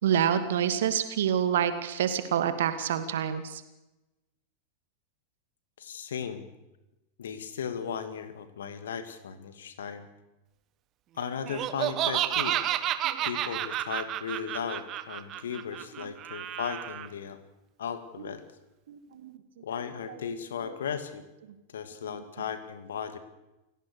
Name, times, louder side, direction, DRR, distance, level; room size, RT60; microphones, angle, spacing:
voice 1, 0.0-3.6 13.0-13.2 18.9-19.3, right 9 dB, 60° right, 11 dB, 2.3 m, -27 dB
voice 2, 5.8-6.5 7.2-10.1 11.2-12.6 13.3-17.4 17.8-18.4 19.6-21.2 21.7-23.2, left 7 dB, 65° left, 11 dB, 2.5 m, -36 dB
Laughter, 11.5-17.1, right 12 dB, 35° right, 1.4 m, -31 dB
29.0 x 17.5 x 6.7 m, 0.98 s
figure-of-eight pair, 90°, 0 cm